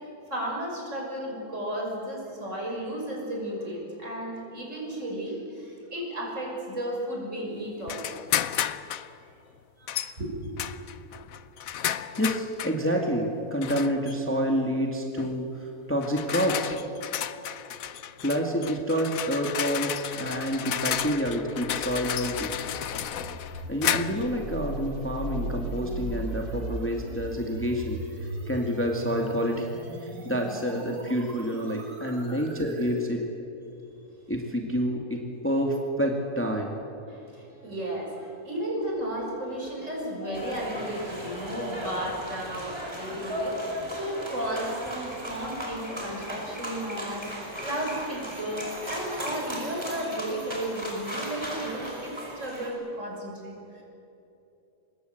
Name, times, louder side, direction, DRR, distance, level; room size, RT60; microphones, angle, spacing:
voice 1, 0.3-8.2 9.8-10.3 32.3-32.4 37.1-53.8, right 1 dB, 50° right, -1 dB, 6.7 m, -34 dB
sound 1, 7.9-9.1 9.9-10.1 10.6-12.8 13.6-14.1 15.2-15.4 16.0-24.3, left 10 dB, 65° left, 1.2 m, -32 dB
voice 2, 12.2-16.8 18.2-22.5 23.7-28.0 28.5-29.7 30.0-33.2 34.3-36.8, equal, 10° left, 1 dB, 2.1 m, -28 dB
sound 2, 20.9-33.0, right 1 dB, 80° right, 3.3 m, -38 dB
sound 3, 40.3-52.7, equal, 15° right, 5.4 m, -36 dB
25.5 x 21.5 x 7.9 m, 2.8 s
omnidirectional pair, 1.6 m